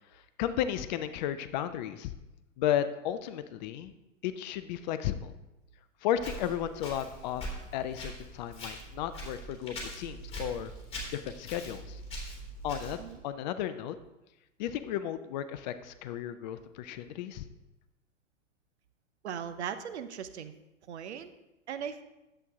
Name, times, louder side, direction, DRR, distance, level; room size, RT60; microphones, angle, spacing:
voice 1, 0.1-2.1 2.6-3.9 4.2-5.3 6.0-7.4 7.7-10.7 11.1-12.0 12.6-13.9 14.6-17.4, left 10 dB, 35° left, 11 dB, 0.5 m, -34 dB
Walk footsteps, 6.2-13.2, equal, 15° left, 3.0 m, -42 dB
voice 2, 19.2-20.5 20.9-21.3 21.7-22.0, right 8 dB, 60° right, 10 dB, 0.8 m, -38 dB
10.5 x 7.7 x 3.6 m, 0.97 s
figure-of-eight pair, 100°, 38 cm